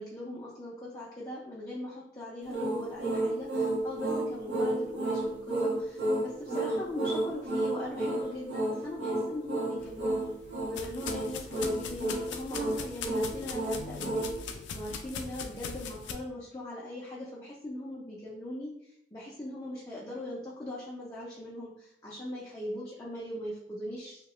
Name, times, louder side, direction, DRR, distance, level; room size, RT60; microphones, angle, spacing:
voice 1, 0.0-10.3 10.7-24.2, left 1 dB, 20° left, -6 dB, 0.4 m, -40 dB
sound 1, 2.5-14.4, right 1 dB, 85° right, 1.0 m, -31 dB
sound 2, 9.8-16.1, left 5 dB, 85° left, 0.3 m, -41 dB
2.8 x 2.3 x 2.9 m, 0.76 s
head